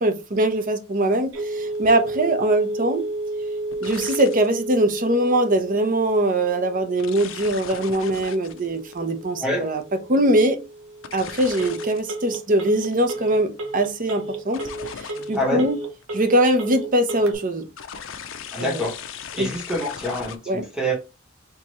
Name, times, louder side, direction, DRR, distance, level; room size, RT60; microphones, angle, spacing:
voice 1, 0.0-3.1 3.8-9.8 10.1-10.6 11.1-14.7 15.0-15.8 16.1-17.7 18.6-18.8 19.4-19.5 20.5-20.7, right 1 dB, 45° right, 0.7 m, -22 dB
Telephone, 1.3-17.3, right 2 dB, 85° right, 1.0 m, -33 dB
sound 1, 1.8-2.0 3.7-4.6 5.3-5.6 7.0-10.0 11.0-12.2 12.5-13.1 14.5-15.6 16.0-16.6 17.8-20.4, left 7 dB, 75° left, 0.6 m, -38 dB
voice 2, 15.3-15.7 18.5-18.9 19.3-21.0, equal, 5° right, 1.1 m, -26 dB
4.5 x 2.9 x 3.0 m
head